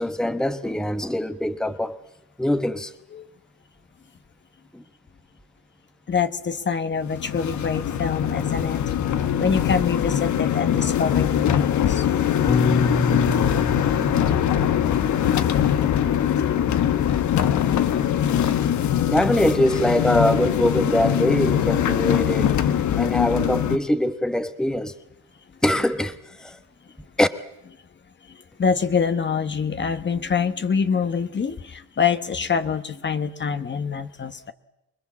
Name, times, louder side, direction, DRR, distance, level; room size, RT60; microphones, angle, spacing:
voice 1, 0.0-2.0 2.4-2.9 4.7-4.8 19.1-24.9 25.6-26.6 27.2-27.3, left 1 dB, ahead, 1.1 m, -23 dB
voice 2, 6.1-8.8 9.4-12.1 16.2-16.3 17.0-17.1 28.6-34.5, left 6 dB, 35° left, 1.2 m, -25 dB
sound 1, 7.0-23.8, left 9 dB, 70° left, 1.3 m, -22 dB
Piano, 12.5-16.9, left 2 dB, 20° left, 1.4 m, -28 dB
25.0 x 21.0 x 7.4 m
cardioid pair, 90°, 30 cm